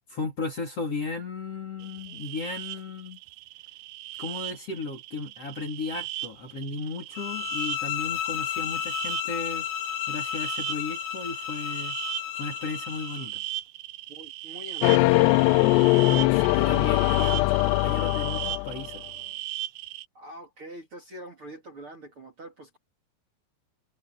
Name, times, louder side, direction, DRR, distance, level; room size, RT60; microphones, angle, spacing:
voice 1, 0.1-3.2 4.2-9.7 10.1-12.0 12.4-13.4 15.8-19.0, left 3 dB, 40° left, 3.2 m, -35 dB
sound 1, 1.8-20.1, right 16 dB, 85° right, 2.1 m, -38 dB
sound 2, 7.1-13.3, left 11 dB, 70° left, 2.7 m, -33 dB
voice 2, 14.1-16.2 20.1-22.8, right 1 dB, 35° right, 2.9 m, -44 dB
sound 3, 14.8-19.0, left 22 dB, 85° left, 2.5 m, -21 dB
omnidirectional pair, 5.3 m